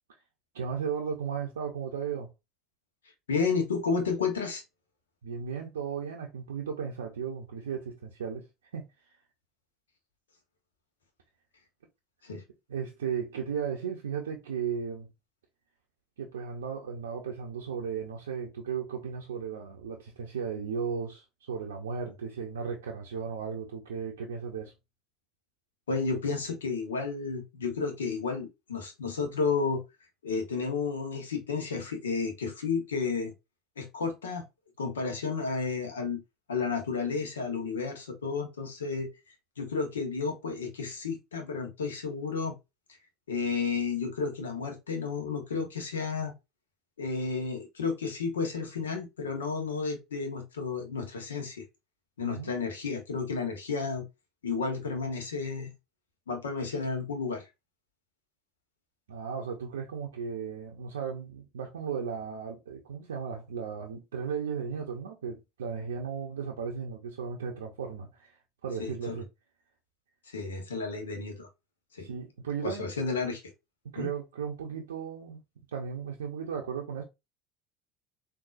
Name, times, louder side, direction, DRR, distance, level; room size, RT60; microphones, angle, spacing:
voice 1, 0.5-2.3 5.2-8.5 8.7-8.9 12.7-15.1 16.2-24.7 52.2-52.5 59.1-69.3 72.0-72.8 73.9-75.4 75.7-77.0, right 6 dB, 85° right, 0.5 m, -35 dB
voice 2, 3.3-4.6 12.2-12.4 25.9-29.8 30.2-33.3 33.8-34.4 34.8-36.2 36.5-39.1 39.6-42.5 43.3-46.3 47.0-51.6 52.2-54.0 54.4-55.7 56.3-57.5 68.8-69.2 70.3-71.5 71.9-72.1 72.6-73.4 74.0-74.1, left 5 dB, 85° left, 0.9 m, -32 dB
3.8 x 2.6 x 2.3 m
hypercardioid pair, 70°, 0 cm